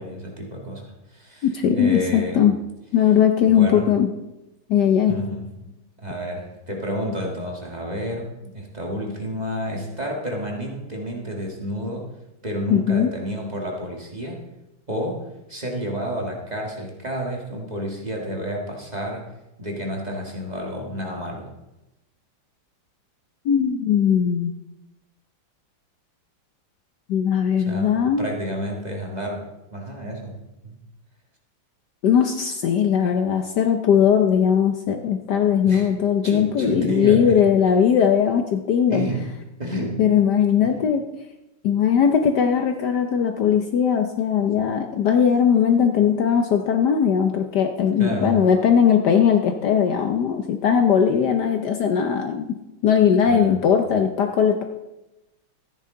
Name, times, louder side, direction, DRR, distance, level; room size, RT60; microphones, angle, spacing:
voice 1, 0.0-2.4 3.5-3.9 5.1-5.7 6.0-12.1 12.4-14.4 14.9-15.2 15.5-19.3 19.6-21.5 27.6-30.4 30.6-30.7 35.6-35.9 36.2-37.4 38.9-39.3 39.6-40.0 40.6-40.8 48.0-48.4 53.3-53.6, equal, 20° right, -1 dB, 1.7 m, -30 dB
voice 2, 1.4-2.5 2.9-4.1 4.7-5.1 12.7-13.1 23.4-24.5 27.1-28.3 32.0-39.0 40.0-41.0 41.6-52.5 52.8-54.6, left 8 dB, 65° left, 5 dB, 1.2 m, -19 dB
13.0 x 10.0 x 3.8 m, 0.95 s
omnidirectional pair, 2.2 m